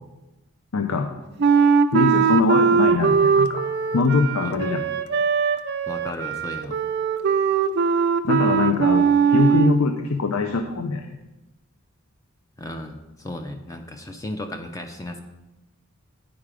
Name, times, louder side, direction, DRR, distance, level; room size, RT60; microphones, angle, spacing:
voice 1, 0.7-1.1 1.9-3.6 3.9-4.8 8.2-9.1 9.3-11.2, left 4 dB, 75° left, 6 dB, 0.5 m, -22 dB
Wind instrument woodwind instrument, 1.4-9.8, right 6 dB, 45° right, 0.4 m, -20 dB
voice 2, 5.9-6.8 12.6-15.2, left 1 dB, 15° left, 5 dB, 0.4 m, -35 dB
8.8 x 4.8 x 4.9 m, 1.1 s
head